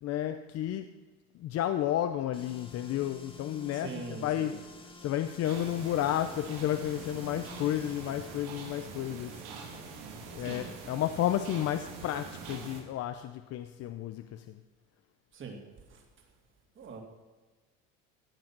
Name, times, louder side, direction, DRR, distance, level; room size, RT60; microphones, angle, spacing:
voice 1, 0.0-0.9 1.3-4.7 5.0-9.4 10.3-14.6, left 12 dB, 50° left, 0.7 m, -32 dB
sound 1, 2.3-8.5, left 3 dB, 15° left, 1.8 m, -50 dB
voice 2, 3.7-4.5 10.4-10.6 15.3-15.6 15.9-16.0 16.8-17.0, right 4 dB, 40° right, 2.9 m, -42 dB
sound 2, 5.4-12.8, right 5 dB, 85° right, 3.1 m, -44 dB
16.5 x 7.8 x 6.2 m
cardioid pair, 120°, 32 cm